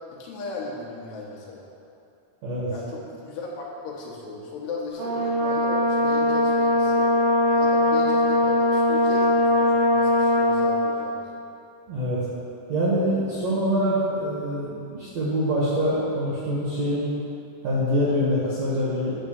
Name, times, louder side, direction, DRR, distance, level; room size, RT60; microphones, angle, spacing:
voice 1, 0.1-1.7 2.7-7.1 7.5-11.4, left 3 dB, 75° left, -3 dB, 3.1 m, -36 dB
Brass instrument, 5.0-10.8, left 1 dB, 85° right, 1.2 m, -21 dB
voice 2, 11.9-12.2 12.7-17.1 17.6-19.2, equal, 65° right, -8 dB, 1.7 m, -25 dB
10.0 x 3.8 x 6.9 m, 2.7 s
omnidirectional pair, 5.0 m